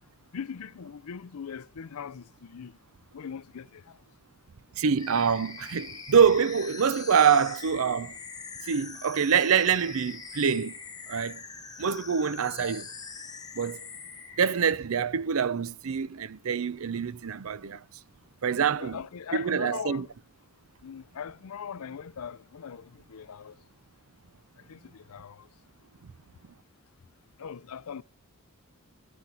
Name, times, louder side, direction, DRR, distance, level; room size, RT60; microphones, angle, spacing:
voice 1, 0.3-2.8 3.1-4.0 18.8-20.1 20.8-23.6 24.7-25.5 27.4-28.0, left 7 dB, 85° left, 0.5 m, -40 dB
voice 2, 4.8-8.1 8.6-10.8 11.1-11.4 11.8-12.9 13.5-13.8 14.4-17.8 18.4-19.0 19.3-20.1 26.0-26.1, right 6 dB, 70° right, 0.5 m, -25 dB
sound 1, 5.0-14.6, left 5 dB, 15° left, 1.3 m, -43 dB
12.0 x 10.0 x 3.9 m
head